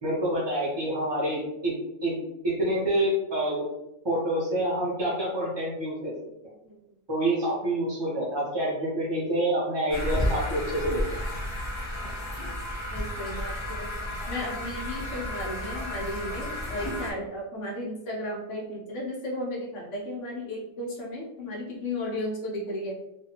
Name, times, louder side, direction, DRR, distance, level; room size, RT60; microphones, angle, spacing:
voice 1, 0.0-1.7 2.0-2.1 2.4-3.7 4.0-6.1 7.1-11.0, right 1 dB, 30° right, -7 dB, 0.5 m, -27 dB
sound 1, 9.9-17.1, equal, 30° left, 0.5 m, -32 dB
voice 2, 12.8-13.9 14.3-22.9, left 1 dB, 65° left, -2 dB, 1.1 m, -34 dB
2.7 x 2.5 x 2.8 m, 0.88 s
omnidirectional pair, 1.4 m